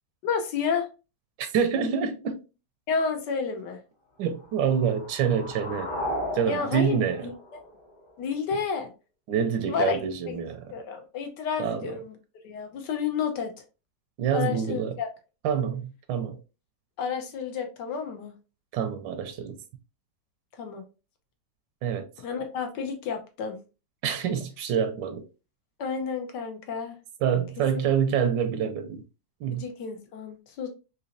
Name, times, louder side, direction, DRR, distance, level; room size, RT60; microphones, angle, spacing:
voice 1, 0.2-0.9 2.9-3.8 6.5-7.6 8.2-8.9 9.7-10.0 10.3-10.4 10.7-12.2 12.4-13.5 14.3-15.1 17.0-18.3 20.6-20.8 22.2-23.6 25.8-26.9 29.5-30.7, left 6 dB, 75° left, 1.4 m, -30 dB
voice 2, 1.4-2.4 4.2-5.9 6.3-7.3 9.3-10.7 11.6-11.9 14.2-15.0 15.4-16.4 18.7-19.6 21.8-22.1 24.0-25.2 27.2-29.0 29.4-29.6, right 7 dB, 85° right, 1.3 m, -26 dB
sound 1, 4.3-8.4, left 1 dB, 25° left, 0.5 m, -36 dB
4.0 x 2.8 x 2.5 m
omnidirectional pair, 1.9 m